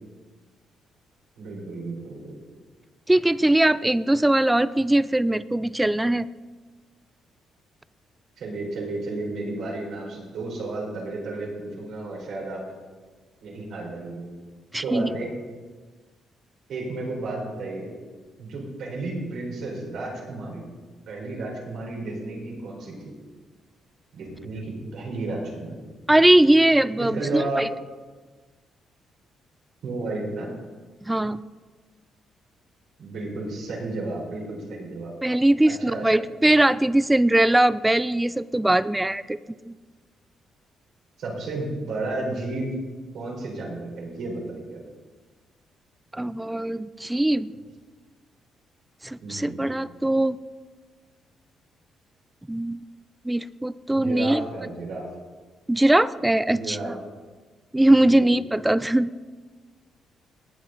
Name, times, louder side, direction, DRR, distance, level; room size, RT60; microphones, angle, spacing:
voice 1, 1.4-2.4 8.4-12.6 13.4-14.2 14.8-15.3 16.7-17.9 18.4-20.6 21.1-22.9 24.1-25.8 27.0-27.7 29.8-30.5 33.0-35.1 35.6-36.1 41.2-42.8 43.1-44.8 49.2-49.6 53.9-55.1 56.5-56.9 57.8-58.3, right 2 dB, 70° right, -2 dB, 4.5 m, -32 dB
voice 2, 3.1-6.3 14.7-15.1 26.1-27.7 31.1-31.4 35.2-39.4 39.7-39.8 46.1-47.5 49.0-50.4 52.5-52.8 53.2-54.4 55.7-57.0 57.7-59.1, right 1 dB, 10° right, 17 dB, 0.4 m, -21 dB
20.0 x 7.2 x 4.0 m, 1.3 s
cardioid pair, 90°, 0 cm